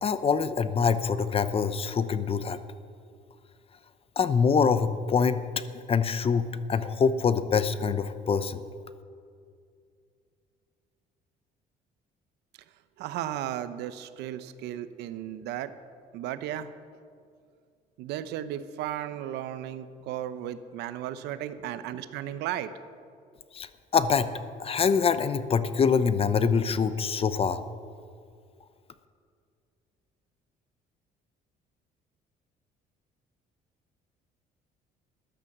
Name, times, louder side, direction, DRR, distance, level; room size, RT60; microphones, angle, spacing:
voice 1, 0.0-2.6 4.2-8.6 23.5-23.7 23.9-24.3 24.6-27.6, left 6 dB, 35° left, 13 dB, 0.7 m, -25 dB
voice 2, 13.0-15.7 16.1-16.7 18.0-22.7, right 11 dB, 85° right, 13 dB, 0.8 m, -35 dB
14.0 x 10.5 x 7.3 m, 2.3 s
cardioid pair, 110°, 17 cm